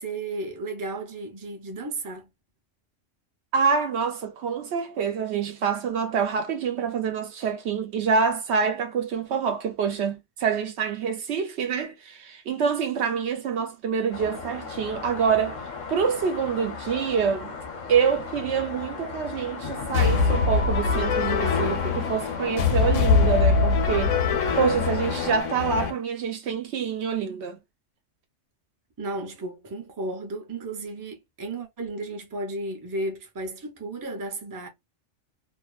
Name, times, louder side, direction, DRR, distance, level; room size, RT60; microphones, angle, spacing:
voice 1, 0.0-2.3 29.0-34.7, right 2 dB, 25° right, 0.5 m, -34 dB
voice 2, 3.5-15.6 15.9-17.5 17.9-24.2 24.6-27.6, right 6 dB, 70° right, 0.8 m, -26 dB
sound 1, 14.1-25.4, left 5 dB, 45° left, 0.7 m, -36 dB
sound 2, 19.9-25.9, left 5 dB, 85° left, 1.0 m, -23 dB
2.6 x 2.1 x 2.3 m
omnidirectional pair, 1.3 m